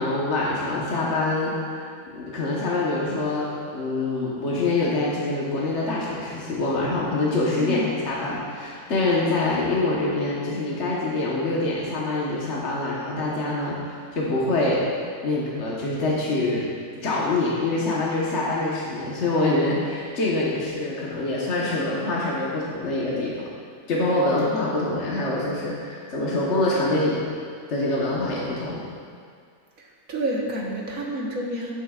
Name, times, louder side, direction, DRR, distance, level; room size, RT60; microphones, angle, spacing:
voice 1, 0.0-3.5 3.7-14.8 15.2-16.7 17.0-23.5 23.9-27.2 27.7-28.8, left 2 dB, 50° left, -5 dB, 1.4 m, -25 dB
voice 2, 7.6-7.9 30.1-31.7, right 1 dB, 60° right, -3 dB, 1.6 m, -28 dB
12.0 x 9.0 x 2.4 m, 2.2 s
omnidirectional pair, 1.7 m